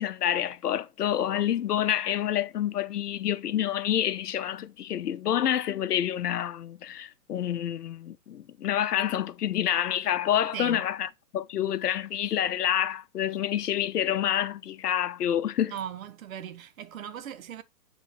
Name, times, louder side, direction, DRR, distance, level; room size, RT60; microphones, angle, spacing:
voice 1, 0.0-15.7, left 10 dB, 70° left, 0.8 m, -28 dB
voice 2, 15.7-17.6, right 10 dB, 55° right, 0.9 m, -38 dB
8.1 x 3.3 x 4.0 m
hypercardioid pair, 140°, 48 cm